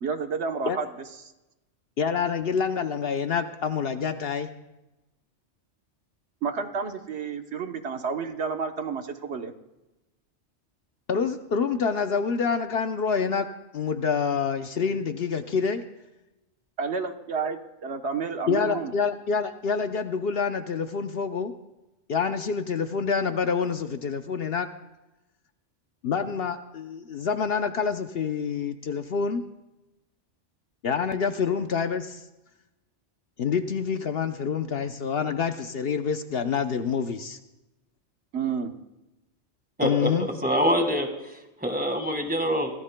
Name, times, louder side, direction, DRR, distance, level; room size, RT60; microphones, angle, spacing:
voice 1, 0.0-0.9 6.4-9.5 16.8-18.9 38.3-38.7, right 5 dB, 65° right, 6 dB, 1.2 m, -30 dB
voice 2, 2.0-4.5 11.1-15.8 18.5-21.5 22.1-24.7 26.0-29.4 30.8-32.2 33.4-37.4 39.8-40.3, left 6 dB, 60° left, 8 dB, 0.9 m, -27 dB
voice 3, 39.8-40.1 40.4-42.7, equal, 10° right, 4 dB, 1.6 m, -25 dB
24.5 x 16.5 x 2.2 m, 0.98 s
omnidirectional pair, 1.2 m